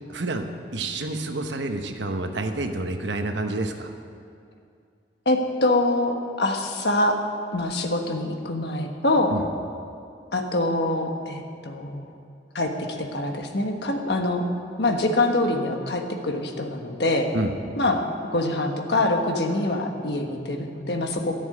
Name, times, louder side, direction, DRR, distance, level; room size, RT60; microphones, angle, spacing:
voice 1, 0.1-0.5 0.7-3.9 9.3-9.4 17.3-17.5, right 2 dB, 85° right, 5 dB, 1.1 m, -28 dB
voice 2, 5.2-7.2 7.5-9.4 10.3-12.2 12.5-14.5 14.8-17.3 17.8-18.1 18.3-21.4, left 2 dB, 65° left, 4 dB, 1.4 m, -25 dB
13.0 x 7.2 x 9.8 m, 2.4 s
head